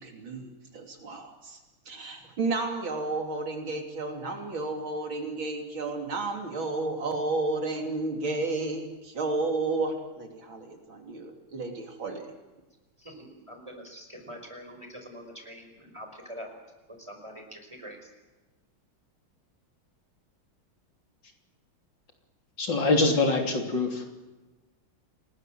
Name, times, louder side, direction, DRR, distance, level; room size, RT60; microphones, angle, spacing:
voice 1, 0.0-1.6 1.9-12.3, right 3 dB, 70° right, 3 dB, 3.7 m, -32 dB
voice 2, 13.0-16.5 17.1-18.0, equal, 15° right, 4 dB, 5.4 m, -44 dB
voice 3, 22.6-24.0, left 3 dB, 60° left, 3 dB, 3.9 m, -24 dB
28.5 x 20.0 x 7.7 m, 1.2 s
omnidirectional pair, 2.3 m